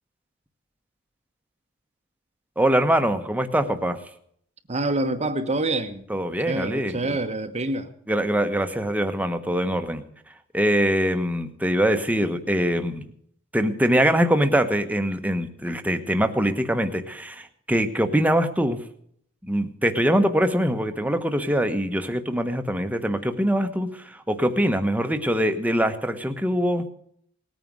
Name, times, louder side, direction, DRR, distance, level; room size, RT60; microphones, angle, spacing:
voice 1, 2.6-4.0 6.1-7.2 8.1-10.0 10.5-13.1 13.5-18.8 19.4-26.8, equal, 5° right, 8 dB, 1.2 m, -23 dB
voice 2, 4.7-6.0 6.5-7.9, right 2 dB, 30° right, 7 dB, 1.1 m, -26 dB
19.0 x 9.4 x 6.3 m, 0.66 s
head